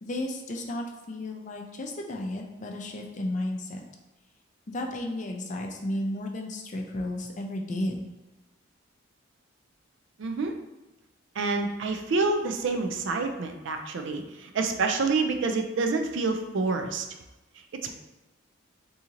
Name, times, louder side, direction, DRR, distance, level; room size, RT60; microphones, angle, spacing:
voice 1, 0.0-3.8 4.7-8.0, left 1 dB, 40° left, 1 dB, 0.5 m, -33 dB
voice 2, 10.2-10.5 11.4-17.0 17.8-17.9, right 3 dB, 65° right, 5 dB, 0.4 m, -27 dB
2.9 x 2.7 x 3.7 m, 1.1 s
head